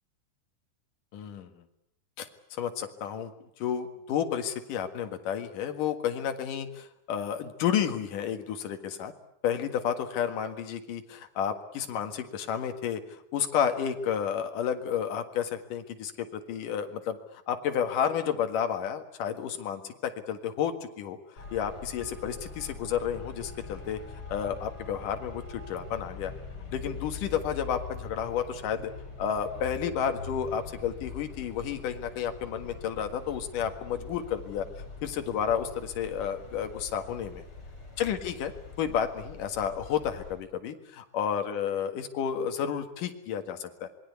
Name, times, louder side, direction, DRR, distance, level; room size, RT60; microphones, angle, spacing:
voice 1, 1.1-1.6 2.2-3.3 3.6-9.1 9.4-21.2 21.5-24.0 24.3-26.3 26.7-28.9 29.2-34.7 35.0-37.4 38.0-38.5 38.8-43.9, left 8 dB, 75° left, 7 dB, 3.3 m, -31 dB
Traffic noise roadway noise, 21.4-40.3, left 4 dB, 40° left, 7.8 m, -43 dB
26.5 x 21.5 x 8.3 m, 0.76 s
omnidirectional pair, 3.8 m